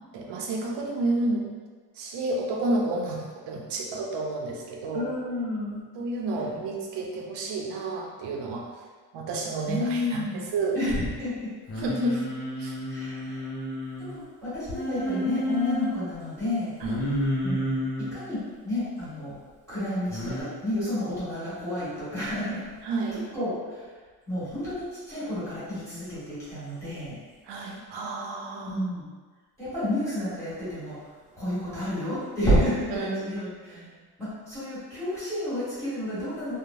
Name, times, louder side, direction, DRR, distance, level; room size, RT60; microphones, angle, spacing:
voice 1, 0.1-1.4 2.0-5.1 6.0-8.6 9.1-10.2 10.5-10.9 11.8-12.2 12.6-12.7 16.8-17.0 22.8-23.3 27.5-28.8 32.9-33.9, right 2 dB, 85° right, 0 dB, 0.6 m, -30 dB
voice 2, 4.9-5.8 6.3-6.4 9.7-11.5 12.9-13.5 14.0-16.7 17.4-17.6 18.1-18.4 18.6-19.3 19.7-22.6 23.1-23.8 24.3-27.2 28.7-29.0 29.6-31.1 31.4-33.8 34.2-36.6, left 1 dB, 10° left, -14 dB, 1.4 m, -30 dB
Singing, 11.7-14.1 14.7-15.9 16.8-18.1 20.1-20.4, left 1 dB, 30° left, 0.4 m, -30 dB
3.2 x 2.0 x 2.6 m, 1.4 s
cardioid pair, 165°, 40 cm